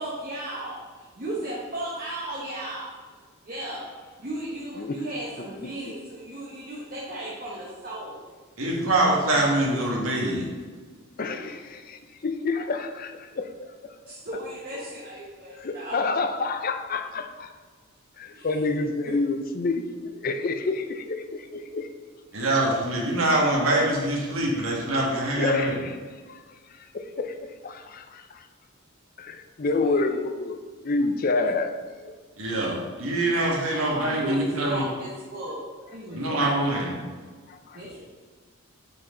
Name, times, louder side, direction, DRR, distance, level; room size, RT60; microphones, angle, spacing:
voice 1, 0.0-2.9 3.5-3.9 4.2-8.2 11.2-11.6 14.1-16.0 18.3-18.8 19.0-19.1 29.7-30.0 31.5-31.6 33.7-36.9 37.7-38.0, right 1 dB, 45° right, -5 dB, 1.1 m, -36 dB
voice 2, 8.6-10.5 22.3-25.8 32.4-34.8 36.1-37.1, right 1 dB, 75° right, -2 dB, 1.7 m, -24 dB
voice 3, 11.2-13.7 15.6-17.5 18.2-21.9 25.4-26.0 26.3-26.4 26.9-27.4 27.6-28.4 29.2-30.6 30.8-31.7 32.0-32.1 37.5-37.8, left 3 dB, 40° left, 7 dB, 0.5 m, -28 dB
8.3 x 4.6 x 3.8 m, 1.5 s
head